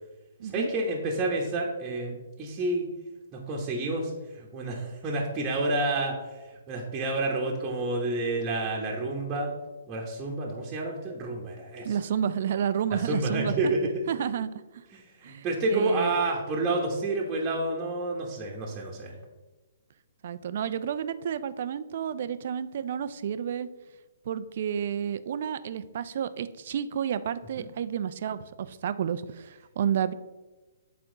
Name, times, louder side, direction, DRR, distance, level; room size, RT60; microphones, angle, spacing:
voice 1, 0.4-2.9 3.3-9.5 9.9-12.0 13.0-13.9 14.9-19.1 27.6-27.7, right 2 dB, 20° right, -3 dB, 1.1 m, -29 dB
voice 2, 11.8-13.7 14.1-14.5 15.2-15.5 15.7-16.1 20.2-23.7 24.3-30.1, right 8 dB, 55° right, 14 dB, 0.4 m, -30 dB
7.8 x 4.3 x 3.8 m, 1.2 s
figure-of-eight pair, 130°, 0 cm